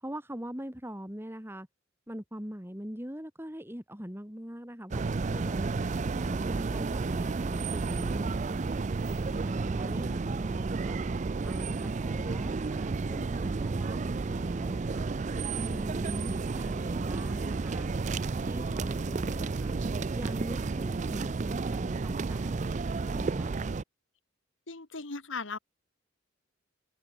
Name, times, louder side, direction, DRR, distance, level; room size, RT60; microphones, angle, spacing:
voice 1, 0.0-1.7 2.1-5.7 6.2-8.7 9.2-11.0 11.4-15.1 15.5-17.9 18.4-19.8 20.1-22.7 23.1-23.7, equal, 10° right, 3.3 m, -42 dB
sound 1, 4.9-23.8, right 4 dB, 35° right, 0.4 m, -32 dB
voice 2, 24.7-25.6, left 4 dB, 70° left, 2.1 m, -37 dB
head